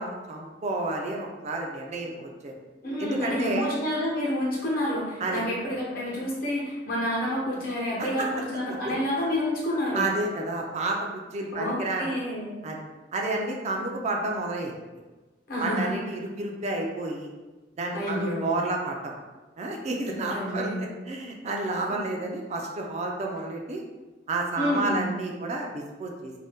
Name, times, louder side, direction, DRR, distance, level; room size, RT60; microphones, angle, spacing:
voice 1, 0.0-2.5 3.0-3.7 5.2-5.4 8.0-8.3 8.8-8.9 9.9-12.1 12.6-12.8 13.1-14.7 15.6-17.3 17.8-19.1 19.6-20.7 21.1-23.8 24.3-26.3, right 2 dB, 40° right, 0 dB, 0.4 m, -30 dB
voice 2, 2.8-10.1 11.5-12.6 15.5-15.9 17.9-18.6 20.3-20.8 21.9-22.0 24.6-25.0, left 1 dB, 55° left, -5 dB, 1.0 m, -29 dB
2.6 x 2.1 x 3.4 m, 1.2 s
head